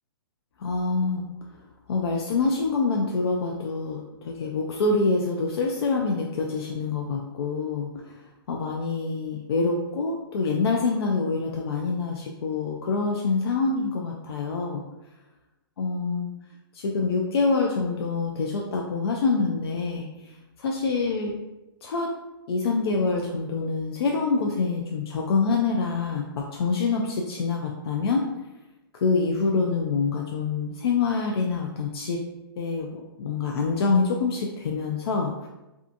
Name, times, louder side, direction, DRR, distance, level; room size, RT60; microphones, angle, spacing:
voice 1, 0.6-1.3 1.9-8.1 8.5-14.8 15.8-16.3 16.7-20.1 20.6-21.4 21.8-22.1 22.5-28.2 29.0-32.2 32.6-35.5, left 4 dB, 80° left, 0 dB, 0.4 m, -26 dB
2.6 x 2.3 x 2.5 m, 0.99 s
hypercardioid pair, 150°, 13 cm